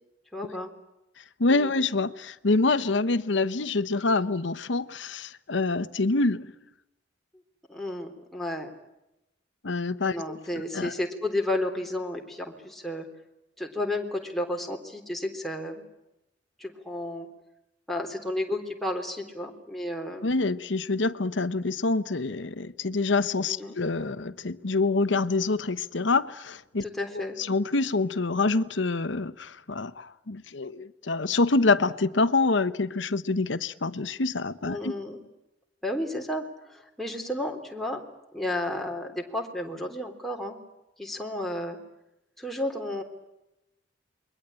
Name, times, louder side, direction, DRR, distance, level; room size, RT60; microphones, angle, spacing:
voice 1, 0.3-0.7 1.5-1.7 7.7-8.7 10.1-13.1 13.6-15.8 16.6-17.3 17.9-20.3 23.5-23.7 26.8-27.4 34.6-35.2 35.8-38.0 38.3-40.6 41.0-41.8 42.4-43.0, left 1 dB, ahead, 3.5 m, -32 dB
voice 2, 1.4-6.5 9.6-10.4 10.7-10.9 20.2-26.8 27.4-34.9, left 3 dB, 75° left, 1.0 m, -26 dB
28.5 x 22.5 x 8.9 m
head